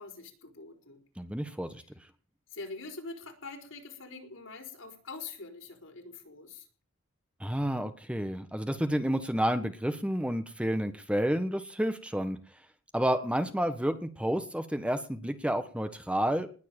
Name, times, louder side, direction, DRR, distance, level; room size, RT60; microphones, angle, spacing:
voice 1, 0.0-1.0 2.5-6.7, left 3 dB, 70° left, 5 dB, 4.7 m, -44 dB
voice 2, 1.2-1.8 7.4-12.4 12.9-16.5, equal, 5° right, 9 dB, 1.3 m, -30 dB
20.0 x 7.5 x 9.0 m, 0.40 s
head